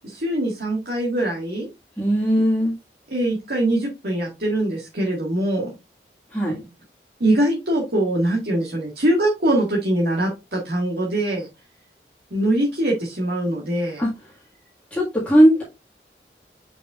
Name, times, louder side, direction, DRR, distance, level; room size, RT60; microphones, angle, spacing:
voice 1, 0.0-1.7 3.1-5.7 7.2-11.5 12.3-14.0, right 1 dB, 65° right, -2 dB, 1.7 m, -22 dB
voice 2, 2.0-2.7 6.3-6.6 14.0-14.1 14.9-15.6, equal, 10° left, -7 dB, 1.7 m, -18 dB
7.5 x 5.3 x 2.4 m, 0.25 s
head